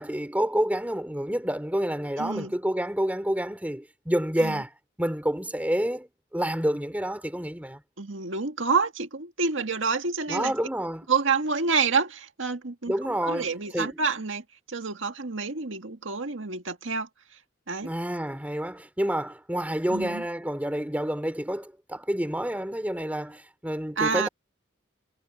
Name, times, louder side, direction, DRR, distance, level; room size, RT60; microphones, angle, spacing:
voice 1, 0.0-4.7 5.0-7.8 10.3-11.1 12.9-13.9 17.8-24.3, equal, 10° right, 2.6 m, -28 dB
voice 2, 2.2-2.5 4.4-4.6 8.0-10.5 11.1-12.9 13.2-17.1 17.7-17.9 19.9-20.2 24.0-24.3, right 5 dB, 75° right, 1.8 m, -28 dB
head